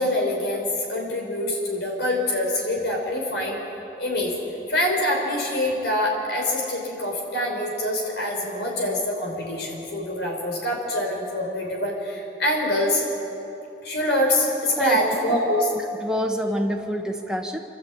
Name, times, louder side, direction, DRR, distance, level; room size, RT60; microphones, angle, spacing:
voice 1, 0.0-3.6 4.0-4.3 4.7-13.0 13.8-15.7, left 1 dB, 85° left, 0 dB, 5.2 m, -25 dB
voice 2, 16.0-17.6, equal, 5° right, 2 dB, 1.4 m, -26 dB
26.5 x 13.0 x 8.7 m, 2.9 s
head